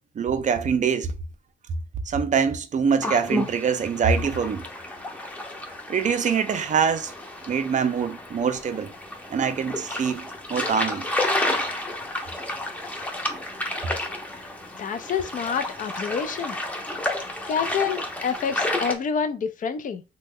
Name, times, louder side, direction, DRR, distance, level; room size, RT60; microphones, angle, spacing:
voice 1, 0.2-1.1 2.1-4.6 5.9-7.1 7.5-8.9 9.3-11.1, right 6 dB, 40° right, 0.5 m, -24 dB
sound 1, 3.0-19.0, left 1 dB, 5° left, 0.7 m, -31 dB
voice 2, 14.8-16.6 17.5-20.0, left 6 dB, 40° left, 0.4 m, -27 dB
2.9 x 2.2 x 3.6 m
cardioid pair, 90°, 20 cm